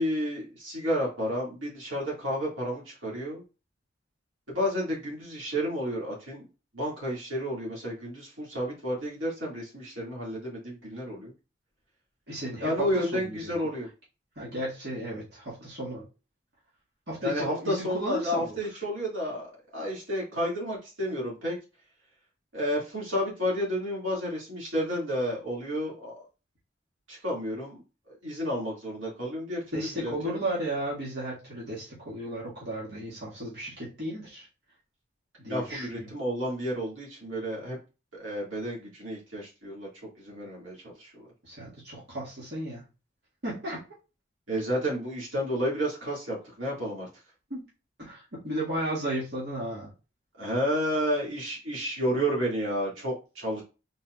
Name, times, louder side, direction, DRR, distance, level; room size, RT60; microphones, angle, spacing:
voice 1, 0.0-3.4 4.5-6.4 6.7-11.3 12.6-13.9 17.2-21.6 22.5-26.2 27.1-27.8 28.1-30.4 35.5-37.8 38.1-39.9 40.2-41.1 44.5-47.1 50.4-53.6, equal, 85° right, -4 dB, 2.2 m, -31 dB
voice 2, 12.3-13.5 14.4-16.0 17.1-18.6 29.7-34.5 35.4-36.1 41.4-42.8 43.4-43.8 47.5-47.6 48.0-49.9, right 1 dB, 55° right, -7 dB, 1.9 m, -34 dB
4.2 x 3.9 x 2.4 m, 0.31 s
head